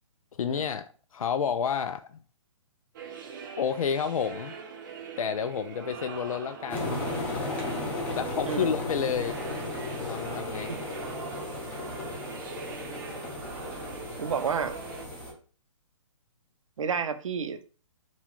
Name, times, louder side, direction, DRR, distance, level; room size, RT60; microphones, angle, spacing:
voice 1, 0.4-2.1 3.6-4.5 5.2-7.0 8.2-9.4 10.1-10.7, left 7 dB, 90° left, 0.4 m, -30 dB
sound 1, 2.9-15.0, right 6 dB, 40° right, 0.7 m, -42 dB
sound 2, 6.7-15.3, left 2 dB, 10° left, 0.7 m, -35 dB
voice 2, 14.2-14.8 16.8-17.6, right 6 dB, 70° right, 0.6 m, -30 dB
4.2 x 2.3 x 4.3 m
hypercardioid pair, 160°, 17 cm